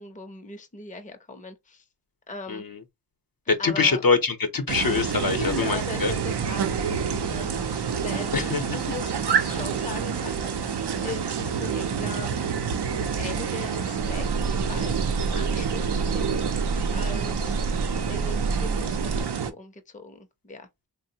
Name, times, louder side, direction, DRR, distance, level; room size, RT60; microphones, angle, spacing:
voice 1, 0.0-1.8 2.3-2.6 3.6-4.0 5.4-10.5 11.0-12.4 12.9-17.6 18.1-20.9, left 3 dB, 20° left, 0.5 m, -39 dB
voice 2, 2.5-2.8 3.5-6.1 8.3-8.8, left 4 dB, 60° left, 0.7 m, -24 dB
sound 1, 4.7-19.5, right 7 dB, 90° right, 0.5 m, -28 dB
sound 2, 14.0-19.2, right 3 dB, 40° right, 0.5 m, -29 dB
3.3 x 2.0 x 2.7 m
wide cardioid pair, 45°, 39 cm